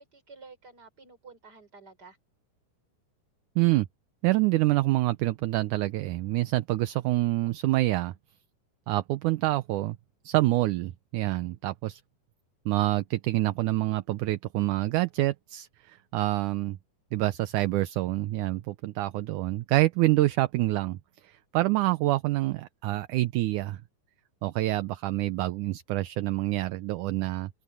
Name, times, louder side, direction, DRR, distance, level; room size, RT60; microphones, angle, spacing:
voice 1, 0.0-2.2, right 4 dB, 30° right, 4.8 m, -51 dB
voice 2, 3.6-3.9 4.2-8.1 8.9-10.0 10.2-12.0 12.7-16.8 17.1-21.0 21.2-23.8 24.4-27.5, right 17 dB, 75° right, 2.1 m, -26 dB
omnidirectional pair, 3.8 m